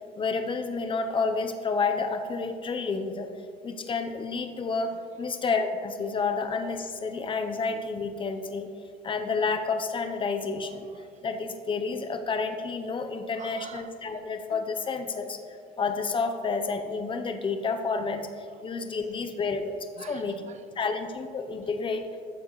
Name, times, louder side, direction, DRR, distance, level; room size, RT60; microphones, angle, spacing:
voice 1, 0.2-3.3 3.6-4.9 5.2-8.7 9.0-10.8 11.2-15.4 15.8-20.4 20.8-22.1, left 4 dB, 30° left, 6 dB, 0.8 m, -30 dB
voice 2, 0.9-1.2 4.6-5.2 10.6-11.2 12.1-12.2 13.3-14.2 18.5-18.6 20.0-20.9, right 8 dB, 45° right, 10 dB, 0.6 m, -48 dB
13.5 x 7.2 x 3.1 m, 2.4 s
cardioid pair, 110°, 17 cm